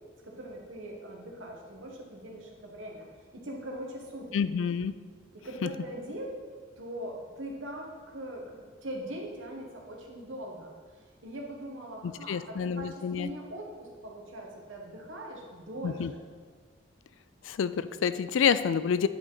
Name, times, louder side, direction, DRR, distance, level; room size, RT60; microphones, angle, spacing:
voice 1, 0.2-3.1 3.3-4.3 5.3-6.4 6.8-16.2, right 1 dB, 85° right, 0 dB, 1.5 m, -41 dB
voice 2, 4.3-4.9 5.6-5.7 12.0-13.3 15.8-16.1 17.4-19.1, left 7 dB, 80° left, 14 dB, 0.4 m, -28 dB
9.9 x 5.1 x 4.0 m, 1.5 s
head